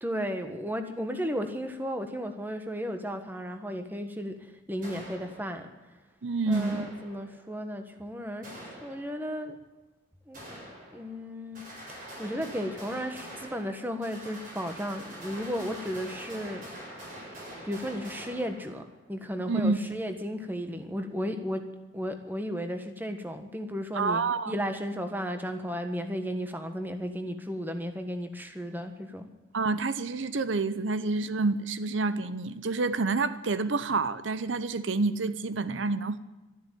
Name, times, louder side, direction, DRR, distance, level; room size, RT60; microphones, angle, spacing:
voice 1, 0.0-4.4 4.7-5.7 6.5-9.5 10.3-10.4 10.9-11.6 11.9-16.7 17.6-18.8 19.1-21.6 21.9-29.3, equal, 10° right, 1.3 m, -34 dB
sound 1, 4.8-5.8 6.5-7.5 8.4-9.4 10.3-11.3 11.5-19.1, right 1 dB, 45° right, 7.1 m, -45 dB
voice 2, 6.2-6.9 19.5-19.8 23.9-24.5 29.5-36.2, right 3 dB, 80° right, 0.8 m, -28 dB
13.0 x 11.5 x 9.1 m
head